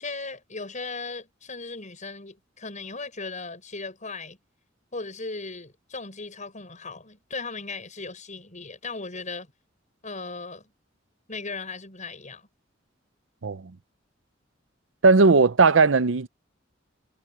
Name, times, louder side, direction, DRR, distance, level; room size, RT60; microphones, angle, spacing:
voice 1, 0.0-4.4 4.9-9.5 10.0-10.6 11.3-12.5, left 3 dB, 40° left, 7.3 m, -37 dB
voice 2, 15.0-16.3, right 4 dB, 75° right, 0.7 m, -17 dB
head